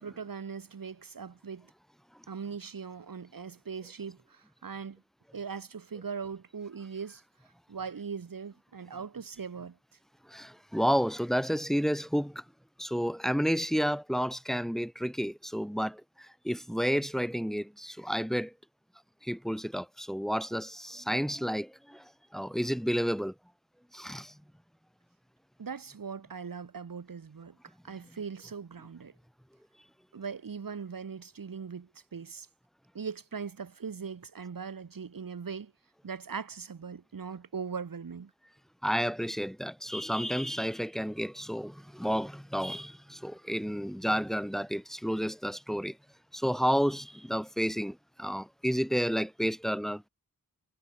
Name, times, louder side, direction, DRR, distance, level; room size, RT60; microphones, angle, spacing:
voice 1, 0.0-1.7 2.3-5.0 5.3-7.2 7.7-9.8 25.6-27.6 27.8-29.1 30.1-32.5 32.9-35.7 36.0-38.3, right 6 dB, 65° right, 2.1 m, -40 dB
voice 2, 10.3-12.4 12.8-16.0 16.4-18.5 19.2-22.0 22.3-23.3 23.9-24.3 38.8-45.9 46.3-50.1, equal, ahead, 3.0 m, -31 dB
wide cardioid pair, 65°, 36 cm